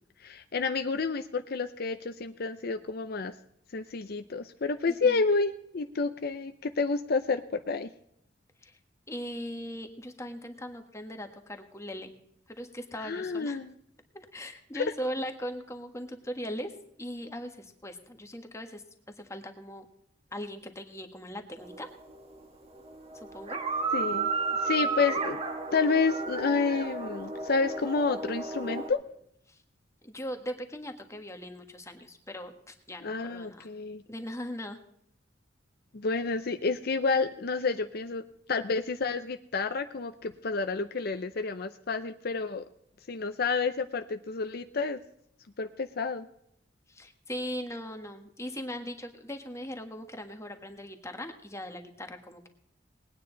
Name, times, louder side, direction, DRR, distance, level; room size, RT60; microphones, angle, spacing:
voice 1, 0.2-3.3 3.7-7.9 13.0-13.7 14.7-14.9 23.9-24.3 24.6-25.4 25.7-29.0 33.0-34.0 35.9-42.6 43.1-45.0 45.6-46.3, left 4 dB, 60° left, 9 dB, 0.6 m, -30 dB
voice 2, 4.9-5.2 8.6-8.8 9.1-12.1 12.5-13.6 14.1-16.7 17.0-18.8 19.2-19.8 20.3-21.9 23.1-23.6 29.5-29.6 30.0-33.7 34.1-34.8 46.9-52.5, equal, 15° left, 5 dB, 1.5 m, -39 dB
sound 1, 21.6-22.5 22.7-28.9, right 4 dB, 35° right, 1.6 m, -33 dB
20.0 x 9.5 x 3.9 m, 0.73 s
head